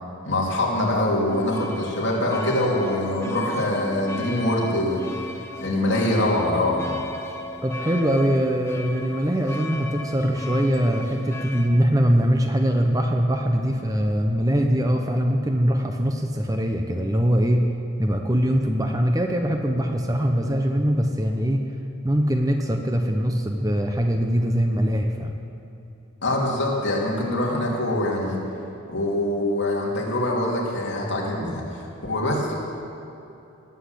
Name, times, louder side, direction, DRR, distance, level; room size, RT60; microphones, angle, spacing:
voice 1, 0.2-5.0 5.6-7.0 26.2-28.4 28.9-31.6 32.0-32.5, left 1 dB, 55° left, -3 dB, 3.2 m, -24 dB
sound 1, 1.3-11.7, left 1 dB, 10° left, 0.9 m, -35 dB
voice 2, 7.6-17.6 18.0-21.7 22.0-25.4, equal, 15° right, 4 dB, 0.8 m, -22 dB
20.0 x 8.2 x 8.2 m, 2.9 s
head